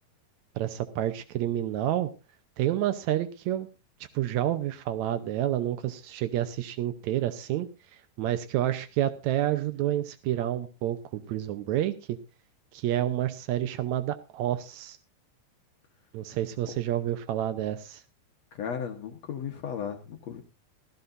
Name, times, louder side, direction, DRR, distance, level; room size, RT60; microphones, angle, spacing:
voice 1, 0.6-2.1 2.6-3.7 4.1-7.7 8.2-12.2 12.7-15.0 16.1-18.0, right 12 dB, 85° right, 11 dB, 1.6 m, -29 dB
voice 2, 18.5-20.4, left 7 dB, 65° left, 3 dB, 1.8 m, -35 dB
15.5 x 15.5 x 2.6 m, 0.29 s
omnidirectional pair, 4.4 m